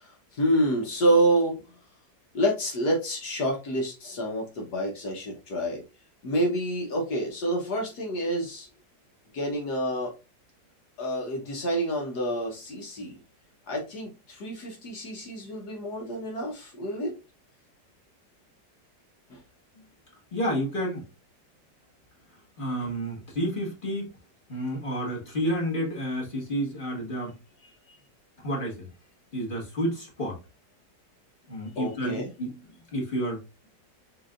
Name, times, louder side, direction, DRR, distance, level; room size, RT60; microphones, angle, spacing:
voice 1, 0.3-1.6 2.3-5.8 6.2-8.7 9.3-10.1 11.0-13.2 13.7-17.2 19.3-19.4 22.8-22.9 27.6-28.0 31.7-32.3, right 1 dB, 65° left, 0 dB, 1.5 m, -28 dB
voice 2, 20.3-21.0 22.6-24.1 24.5-27.4 28.4-28.9 29.3-30.4 31.5-32.6 32.9-33.4, equal, 30° left, -3 dB, 1.7 m, -30 dB
6.2 x 2.9 x 2.5 m, 0.28 s
omnidirectional pair, 1.9 m